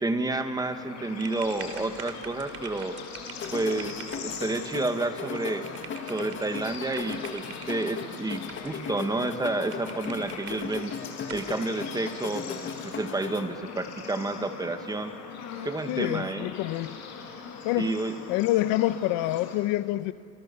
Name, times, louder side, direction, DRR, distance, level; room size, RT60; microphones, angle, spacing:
voice 1, 0.0-3.0 3.5-5.7 6.1-10.9 11.3-15.1 15.6-16.5 17.8-18.2, right 2 dB, 10° right, 1.7 m, -30 dB
Bird / Insect / Frog, 0.6-19.5, left 5 dB, 50° left, 5.9 m, -41 dB
sound 1, 1.2-7.9 8.5-9.0 9.3-9.4 9.7-10.9 11.3-11.5, right 7 dB, 45° right, 3.1 m, -45 dB
sound 2, 3.3-13.4, left 6 dB, 35° left, 2.2 m, -38 dB
voice 2, 15.9-17.0 17.6-17.9 18.3-20.1, left 16 dB, 75° left, 1.0 m, -26 dB
29.5 x 26.0 x 7.0 m
cardioid pair, 125°, 34 cm